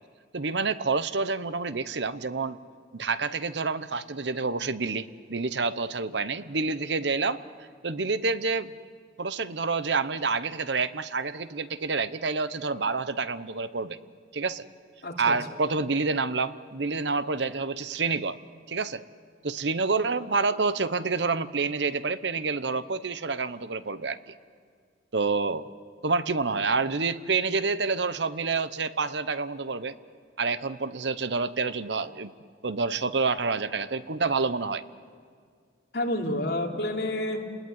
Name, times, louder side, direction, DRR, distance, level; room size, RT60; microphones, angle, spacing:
voice 1, 0.3-2.6 2.9-7.4 7.8-8.8 9.2-14.0 14.3-14.6 15.2-18.4 18.7-19.0 19.4-24.3 25.1-25.7 26.0-29.9 30.4-32.3 32.6-34.8, right 4 dB, 75° right, 14 dB, 0.9 m, -28 dB
voice 2, 15.0-15.4 35.9-37.5, left 1 dB, 60° left, 0 dB, 3.3 m, -29 dB
30.0 x 20.5 x 9.5 m, 2.1 s
head